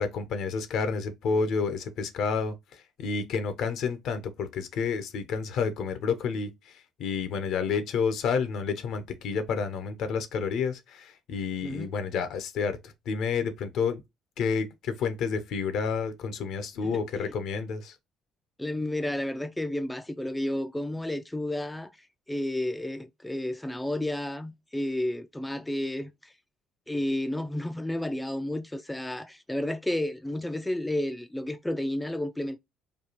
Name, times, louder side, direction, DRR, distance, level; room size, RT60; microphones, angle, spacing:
voice 1, 0.0-14.0 14.4-17.9, left 5 dB, 70° left, 0.8 m, -30 dB
voice 2, 11.6-11.9 16.8-17.0 18.6-26.3 26.9-32.6, left 1 dB, 10° left, 0.4 m, -31 dB
3.4 x 2.3 x 4.0 m
supercardioid pair, 70°, 0 cm